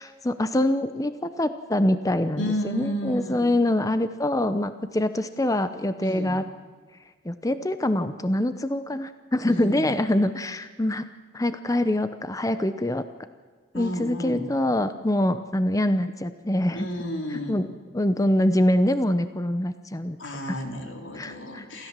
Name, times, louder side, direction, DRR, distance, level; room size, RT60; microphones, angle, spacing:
voice 1, 0.0-6.4 7.2-11.1 11.3-13.1 13.7-16.9 17.3-17.7 17.9-20.2 20.5-20.6 21.1-21.7, left 1 dB, 20° left, 11 dB, 0.7 m, -24 dB
voice 2, 2.4-3.5 6.0-6.4 9.5-9.9 13.7-14.5 16.7-17.6 20.2-21.9, equal, 90° left, 3 dB, 3.8 m, -31 dB
28.5 x 14.0 x 7.5 m, 1.5 s
head